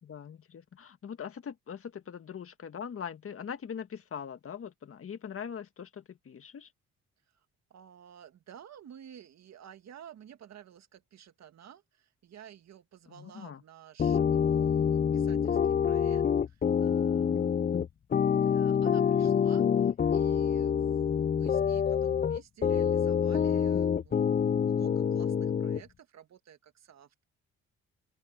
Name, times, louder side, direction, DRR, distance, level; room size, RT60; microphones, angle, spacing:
voice 1, 0.0-6.7 13.1-13.6, left 7 dB, 45° left, 1.8 m, -41 dB
voice 2, 7.7-17.7 18.4-27.2, right 9 dB, 60° right, 2.1 m, -53 dB
sound 1, 14.0-25.8, left 7 dB, 30° left, 0.5 m, -26 dB
open air
cardioid pair, 90°, 30 cm